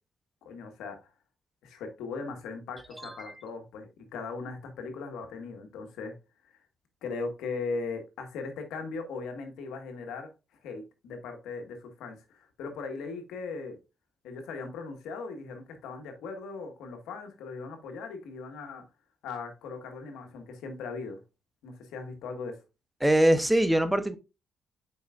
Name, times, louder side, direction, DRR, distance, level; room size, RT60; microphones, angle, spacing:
voice 1, 0.4-1.0 1.6-6.2 7.0-10.3 10.6-13.8 14.2-18.8 19.2-21.2 21.6-22.6, left 4 dB, 90° left, 1.6 m, -38 dB
voice 2, 3.0-3.3 23.0-24.2, right 1 dB, 5° right, 0.8 m, -23 dB
7.2 x 5.5 x 2.5 m
cardioid pair, 90°, 0 cm